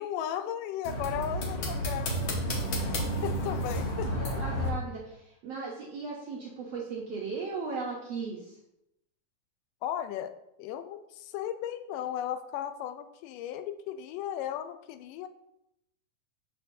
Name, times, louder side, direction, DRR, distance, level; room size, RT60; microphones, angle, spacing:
voice 1, 0.0-2.3 2.9-3.0 3.2-4.1 9.8-10.3 10.6-15.3, left 10 dB, 90° left, 10 dB, 2.2 m, -35 dB
sound 1, 0.8-4.7, equal, 60° left, 1.4 m, -31 dB
voice 2, 4.0-8.5, right 4 dB, 70° right, -3 dB, 1.5 m, -37 dB
6.8 x 6.6 x 2.7 m, 0.84 s
omnidirectional pair, 3.7 m